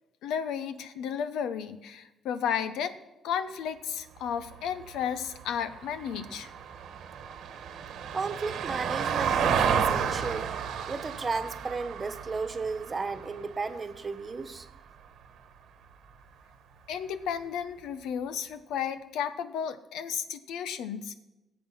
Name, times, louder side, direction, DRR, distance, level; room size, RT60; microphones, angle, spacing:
voice 1, 0.2-2.9 3.2-6.5 16.9-21.1, left 8 dB, 85° left, 11 dB, 0.9 m, -33 dB
Vehicle, 4.2-14.6 16.9-17.0, right 7 dB, 75° right, 1.3 m, -32 dB
voice 2, 8.1-10.5 10.9-14.7, right 4 dB, 30° right, 9 dB, 1.2 m, -34 dB
17.5 x 7.7 x 5.6 m, 0.99 s
cardioid pair, 90°, 0 cm